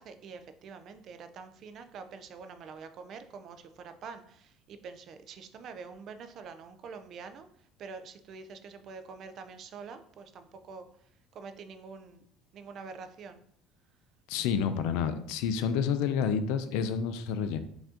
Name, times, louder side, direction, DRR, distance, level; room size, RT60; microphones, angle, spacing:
voice 1, 0.0-7.5 7.8-10.9 11.3-12.3 12.5-13.4, right 5 dB, 40° right, 9 dB, 0.3 m, -46 dB
voice 2, 14.3-17.6, left 7 dB, 80° left, 10 dB, 0.4 m, -29 dB
4.8 x 2.6 x 3.6 m, 0.67 s
cardioid pair, 160°, 0 cm